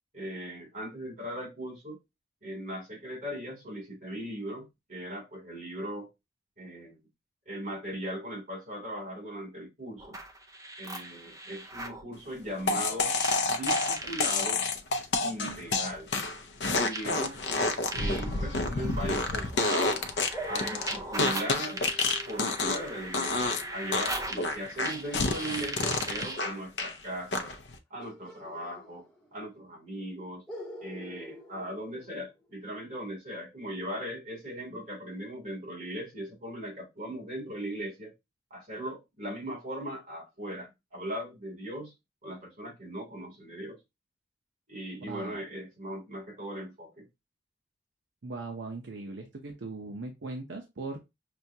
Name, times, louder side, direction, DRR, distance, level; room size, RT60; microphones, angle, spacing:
voice 1, 0.1-2.0 2.4-6.1 6.6-7.0 7.5-10.2 10.8-13.1 13.5-14.6 15.2-16.1 16.8-20.0 20.5-21.8 22.2-27.5 27.9-29.0 29.3-30.4 30.8-38.1 38.5-41.9 42.2-43.8 44.7-47.1, equal, 45° right, 2.7 m, -38 dB
sound 1, 10.0-12.0 13.1-14.4 15.5-15.6 16.9-26.5, right 2 dB, 20° right, 0.5 m, -39 dB
sound 2, 12.7-22.9 23.1-23.6 23.9-26.9 27.3-27.8, left 3 dB, 70° left, 0.6 m, -29 dB
sound 3, 20.3-25.8 28.0-29.5 29.7-29.8 30.5-32.7, right 1 dB, 5° left, 0.8 m, -47 dB
voice 2, 45.0-45.4 48.2-51.0, right 3 dB, 80° right, 0.7 m, -39 dB
6.1 x 2.2 x 2.7 m
head